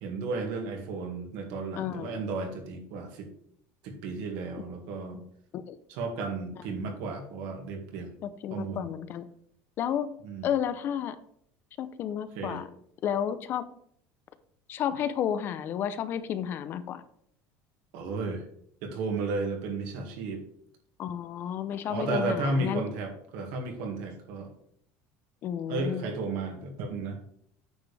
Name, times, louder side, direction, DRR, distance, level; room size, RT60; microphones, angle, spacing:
voice 1, 0.0-3.3 3.8-5.2 5.9-8.1 8.5-8.9 10.2-10.5 12.4-12.6 17.9-18.4 18.8-20.4 21.9-24.5 25.7-27.2, right 3 dB, 70° right, 4 dB, 2.0 m, -33 dB
voice 2, 1.7-2.2 5.5-5.8 8.2-9.2 9.8-10.1 10.4-11.2 11.8-12.7 13.0-13.7 14.7-17.0 21.0-22.8 25.4-26.0, left 9 dB, 35° left, 12 dB, 0.5 m, -31 dB
9.4 x 7.1 x 3.4 m, 0.66 s
cardioid pair, 170°, 6 cm